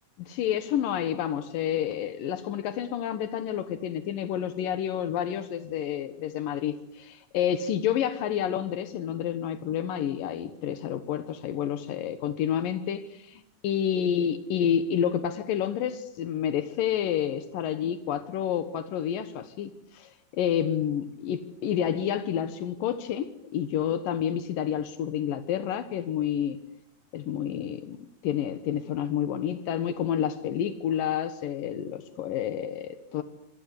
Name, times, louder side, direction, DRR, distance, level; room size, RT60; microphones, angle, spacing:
voice 1, 0.2-26.6 27.1-28.0 28.2-33.2, left 9 dB, 85° left, 11 dB, 3.0 m, -29 dB
26.5 x 25.5 x 8.5 m, 0.74 s
omnidirectional pair, 3.9 m